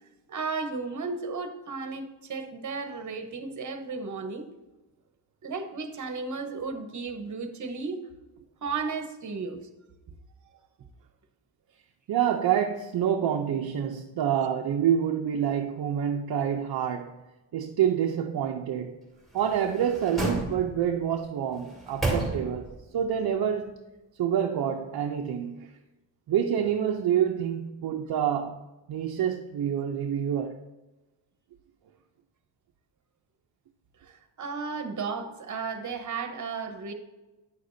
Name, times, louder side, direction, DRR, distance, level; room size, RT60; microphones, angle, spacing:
voice 1, 0.3-4.5 5.4-8.0 8.6-9.6 34.0-36.9, right 4 dB, 40° right, 1.0 m, -34 dB
voice 2, 12.1-17.2 17.5-19.0 19.3-23.8 24.2-25.7 26.3-28.6 28.9-30.6, right 9 dB, 55° right, 0.7 m, -27 dB
sound 1, 19.3-21.0 21.5-22.8 23.2-23.3, right 2 dB, ahead, 2.4 m, -32 dB
9.6 x 6.6 x 2.7 m
cardioid pair, 120°, 44 cm